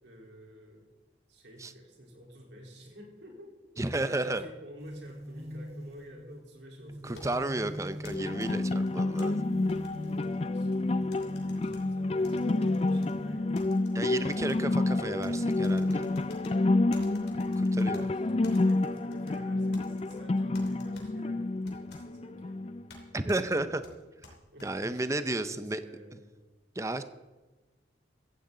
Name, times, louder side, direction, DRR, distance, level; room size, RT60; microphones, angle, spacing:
voice 1, 0.0-0.9 1.3-3.5 3.8-7.4 9.9-13.6 17.3-17.6 18.0-22.7 24.5-26.3, equal, 70° right, -1 dB, 3.9 m, -50 dB
voice 2, 3.8-4.5 7.0-9.4 13.9-16.1 17.6-18.1 23.1-23.8 24.6-25.8 26.8-27.0, right 2 dB, 15° right, 11 dB, 0.6 m, -32 dB
sound 1, 4.8-13.6 14.2-16.3, equal, 35° right, 4.1 m, -44 dB
sound 2, 7.2-9.3 9.7-10.8 11.1-11.8 12.2-13.1 13.5-14.6 15.2-16.5 16.9-18.0 18.4-19.4 19.7-20.2 20.5-21.1 21.7-22.0 22.9-23.0 23.3-23.4 23.8-24.7, left 3 dB, 60° left, 3.0 m, -52 dB
sound 3, 8.1-23.0, left 2 dB, 35° left, 0.4 m, -29 dB
15.5 x 14.5 x 3.9 m, 1.2 s
head